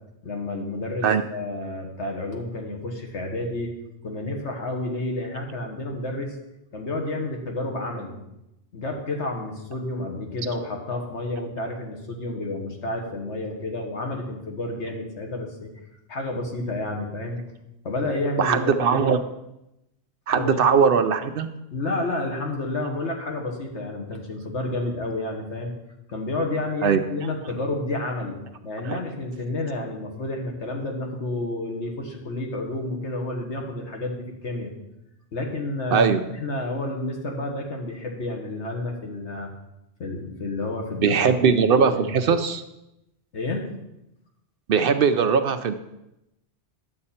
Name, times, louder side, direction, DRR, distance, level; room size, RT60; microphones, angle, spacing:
voice 1, 0.2-3.7 4.0-6.4 6.7-8.2 8.7-15.7 16.1-17.4 17.8-19.1 20.3-20.6 21.7-25.7 26.1-28.4 28.6-34.7 35.3-39.5 40.0-42.2 43.3-43.7, left 2 dB, 85° left, 1 dB, 1.7 m, -30 dB
voice 2, 18.4-19.2 20.3-21.5 26.8-27.0 28.8-29.0 35.9-36.2 41.0-42.6 44.7-45.7, right 6 dB, 60° right, 9 dB, 0.7 m, -20 dB
10.5 x 7.5 x 4.3 m, 0.90 s
omnidirectional pair, 1.2 m